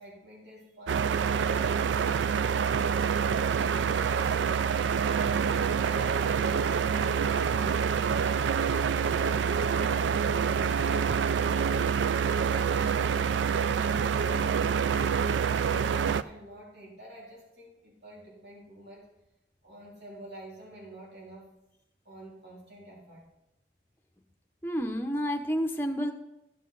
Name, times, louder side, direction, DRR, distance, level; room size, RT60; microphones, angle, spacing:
voice 1, 0.0-2.4 13.8-19.1 19.6-21.5 22.0-23.2, right 1 dB, 60° right, -4 dB, 3.1 m, -48 dB
sound 1, 0.9-16.2, right 6 dB, 85° right, 0.4 m, -26 dB
voice 2, 24.6-26.1, equal, 10° left, 3 dB, 0.8 m, -30 dB
14.0 x 7.3 x 3.9 m, 0.88 s
head